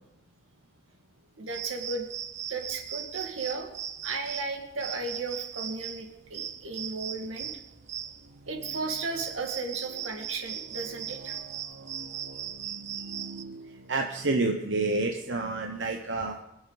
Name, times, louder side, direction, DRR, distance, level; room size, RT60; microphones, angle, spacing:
voice 1, 1.4-2.1 2.5-7.5 8.5-11.4, right 3 dB, 90° right, 3 dB, 2.0 m, -35 dB
sound 1, 1.5-13.4, right 9 dB, 35° right, 0.5 m, -38 dB
voice 2, 10.8-16.4, right 3 dB, 65° right, 2 dB, 1.0 m, -32 dB
24.0 x 8.1 x 4.0 m, 0.86 s
head